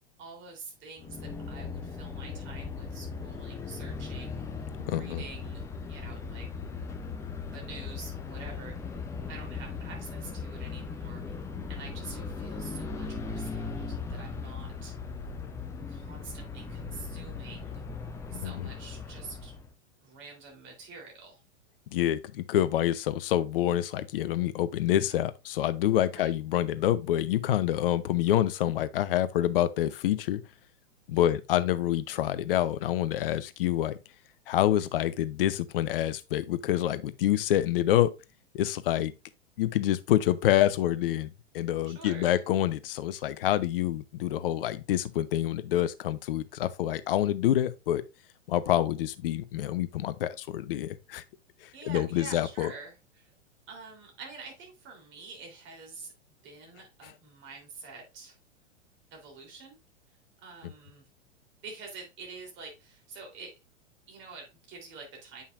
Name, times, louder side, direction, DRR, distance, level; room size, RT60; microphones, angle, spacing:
voice 1, 0.2-6.5 7.5-9.0 9.3-11.3 11.7-15.0 15.9-17.8 18.3-19.5 20.0-21.4 26.1-26.3 31.1-31.3 41.8-42.4 51.7-53.3 53.7-56.1 56.4-58.4 59.1-59.8 60.4-61.1 61.6-63.5 64.1-65.4, right 4 dB, 30° right, 3.4 m, -47 dB
sound 1, 1.0-19.7, left 5 dB, 10° left, 0.5 m, -38 dB
voice 2, 4.9-5.2 18.4-18.7 21.9-30.4 31.1-34.0 34.5-38.1 38.5-39.1 39.6-48.0 48.5-51.2 51.6-52.7, left 12 dB, 50° left, 0.7 m, -27 dB
8.7 x 5.5 x 2.5 m
figure-of-eight pair, 100°, 37 cm